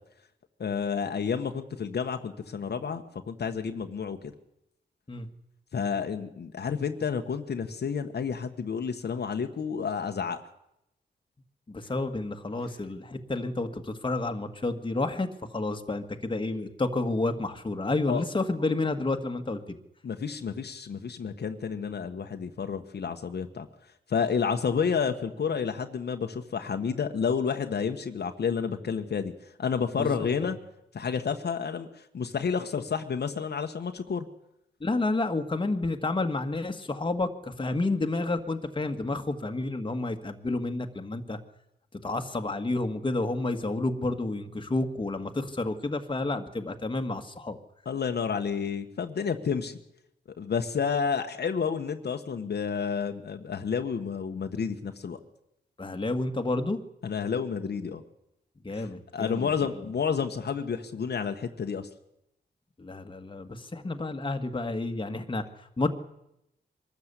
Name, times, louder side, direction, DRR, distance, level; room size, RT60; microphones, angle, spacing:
voice 1, 0.6-4.3 5.7-10.4 18.1-18.3 20.0-23.7 24.1-29.3 29.6-30.6 30.9-31.9 32.1-34.2 47.8-49.8 50.4-55.2 57.0-58.0 58.7-58.9 59.1-61.9, left 6 dB, 65° left, 5 dB, 1.4 m, -30 dB
voice 2, 11.7-19.8 30.0-30.5 34.8-41.4 42.0-47.6 55.8-56.8 58.6-59.5 62.8-65.4 65.8-65.9, left 2 dB, 25° left, 5 dB, 1.7 m, -30 dB
23.5 x 13.5 x 8.3 m, 0.83 s
wide cardioid pair, 90°, 18 cm